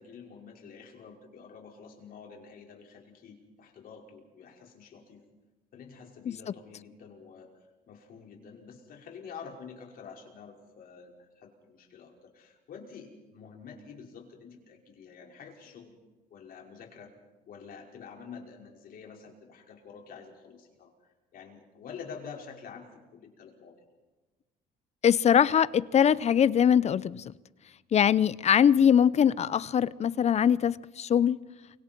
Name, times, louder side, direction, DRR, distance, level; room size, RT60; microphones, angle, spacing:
voice 1, 0.0-5.2 5.7-7.5 7.9-15.9 16.3-17.1 17.5-20.9 21.3-23.8, left 6 dB, 60° left, 5.4 m, -48 dB
voice 2, 25.0-27.3 27.9-31.4, left 8 dB, 40° left, 0.6 m, -22 dB
30.0 x 24.5 x 4.6 m
cardioid pair, 110°, 17 cm